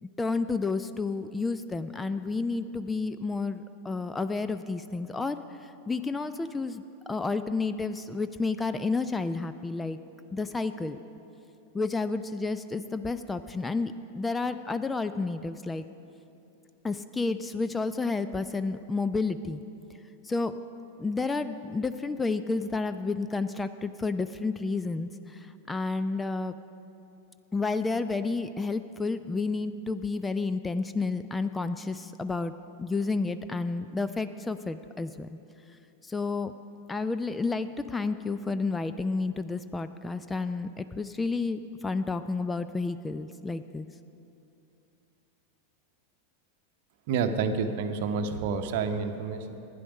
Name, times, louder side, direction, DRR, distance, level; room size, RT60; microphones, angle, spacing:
voice 1, 0.0-5.4 5.9-10.0 10.3-11.0 11.7-15.8 16.8-19.6 20.2-20.5 21.0-26.5 27.5-32.5 32.8-35.3 36.0-36.5 36.9-43.9, left 3 dB, 10° left, 11 dB, 0.3 m, -31 dB
voice 2, 47.1-49.7, right 5 dB, 50° right, 8 dB, 0.8 m, -29 dB
12.0 x 10.0 x 5.3 m, 2.7 s
figure-of-eight pair, 90°, 0 cm